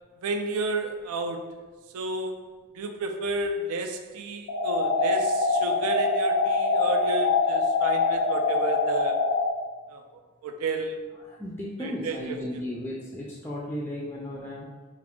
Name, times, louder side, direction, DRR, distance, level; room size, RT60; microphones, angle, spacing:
voice 1, 0.2-1.6 1.9-2.4 2.7-9.2 9.9-10.0 10.4-11.0 11.8-12.6, right 2 dB, 90° right, 5 dB, 0.4 m, -32 dB
sound 1, 4.5-9.5, left 3 dB, 80° left, 0.4 m, -24 dB
voice 2, 11.2-14.7, left 1 dB, 10° left, -3 dB, 0.3 m, -35 dB
4.7 x 2.5 x 3.6 m, 1.3 s
head